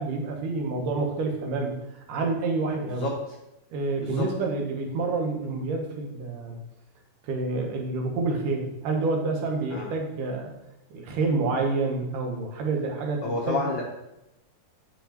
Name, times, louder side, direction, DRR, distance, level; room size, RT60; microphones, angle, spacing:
voice 1, 0.0-1.8 2.1-3.1 3.7-6.5 7.2-10.5 10.9-13.6, right 3 dB, 80° right, 2 dB, 2.6 m, -28 dB
voice 2, 13.2-13.8, left 3 dB, 90° left, -2 dB, 1.0 m, -29 dB
9.2 x 5.7 x 3.0 m, 0.89 s
omnidirectional pair, 3.7 m